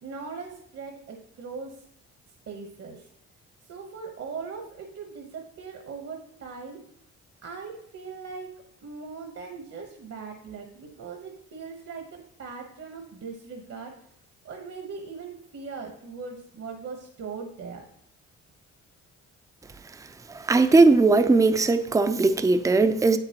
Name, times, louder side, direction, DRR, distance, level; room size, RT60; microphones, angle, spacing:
voice 1, 0.0-1.8 2.5-3.1 3.7-6.8 7.4-14.0 14.4-17.9, right 5 dB, 55° right, 1.1 m, -40 dB
voice 2, 20.5-23.2, right 3 dB, 10° right, 0.4 m, -19 dB
7.9 x 6.8 x 2.9 m
cardioid pair, 90°, 30 cm